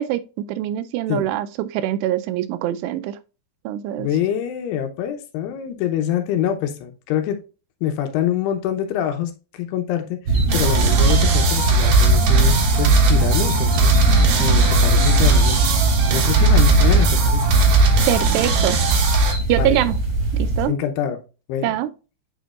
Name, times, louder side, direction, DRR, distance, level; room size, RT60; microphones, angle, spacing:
voice 1, 0.0-3.2 3.7-4.1 18.1-18.8 19.5-20.0 20.3-20.8 21.6-21.9, right 13 dB, 90° right, 2.7 m, -23 dB
voice 2, 4.0-7.4 7.8-17.5 19.6-19.8 20.7-21.2 21.5-21.7, left 10 dB, 80° left, 2.8 m, -25 dB
sound 1, 10.3-20.7, right 3 dB, 50° right, 1.6 m, -20 dB
sound 2, 10.5-19.3, right 2 dB, 70° right, 1.7 m, -18 dB
8.2 x 5.1 x 2.4 m
omnidirectional pair, 4.7 m